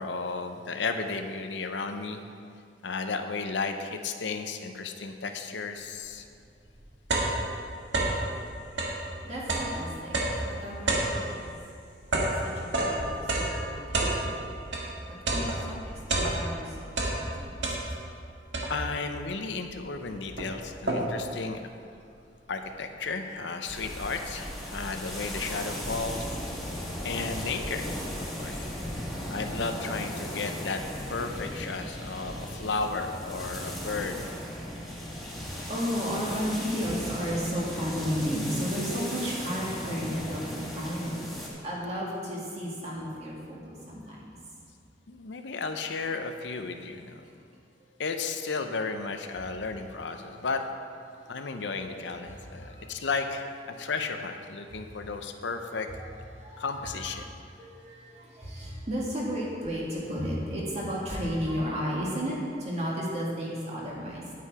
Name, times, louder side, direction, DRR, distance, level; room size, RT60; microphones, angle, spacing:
voice 1, 0.0-2.2 2.8-6.3 18.7-21.6 22.5-26.3 27.0-27.9 28.2-28.6 29.3-30.8 31.1-34.2 45.1-47.2 48.0-50.6 51.3-53.5 53.8-55.9 56.6-57.2, left 4 dB, 70° left, 6 dB, 0.7 m, -33 dB
sound 1, 6.2-6.3 6.7-8.3 8.7-14.9 15.3-16.6 16.9-18.2 18.5-19.1 19.7-19.8 20.1-21.3, right 2 dB, 70° right, 1.6 m, -29 dB
voice 2, 9.2-11.6 12.3-14.6 15.1-17.7 32.1-32.7 33.6-33.8 34.6-41.2 41.6-44.3 50.0-50.1 51.2-51.4 52.3-53.0 53.7-53.9 54.7-55.0 55.8-56.0 56.3-57.0 57.4-64.2, equal, 35° right, -4 dB, 2.1 m, -34 dB
sound 2, 23.7-41.5, equal, ahead, 1.9 m, -37 dB
9.4 x 8.4 x 4.8 m, 2.3 s
head